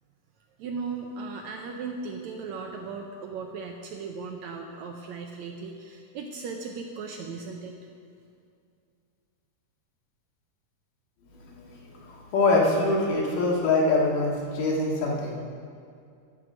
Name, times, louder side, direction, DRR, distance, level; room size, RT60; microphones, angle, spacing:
voice 1, 0.6-7.7, right 4 dB, 75° right, 2 dB, 1.8 m, -37 dB
voice 2, 11.4-15.3, left 2 dB, 75° left, -3 dB, 3.4 m, -24 dB
14.5 x 6.3 x 6.4 m, 2.3 s
omnidirectional pair, 3.8 m